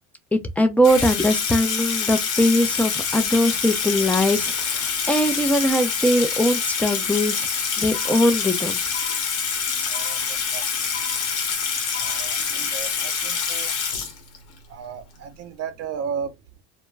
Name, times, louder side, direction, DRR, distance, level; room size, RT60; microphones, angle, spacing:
voice 1, 0.3-7.5 7.8-8.8, equal, 5° left, 0.4 m, -21 dB
Water tap faucet / Sink (filling or washing), 0.8-14.6, left 6 dB, 90° left, 0.9 m, -26 dB
sound 1, 7.9-8.6 8.9-9.6 9.9-10.6 10.9-11.6 11.9-12.6, left 9 dB, 45° left, 0.7 m, -40 dB
voice 2, 9.9-10.9 11.9-13.7 14.7-16.3, right 7 dB, 45° right, 0.6 m, -35 dB
2.2 x 2.0 x 3.2 m
supercardioid pair, 95°, 33 cm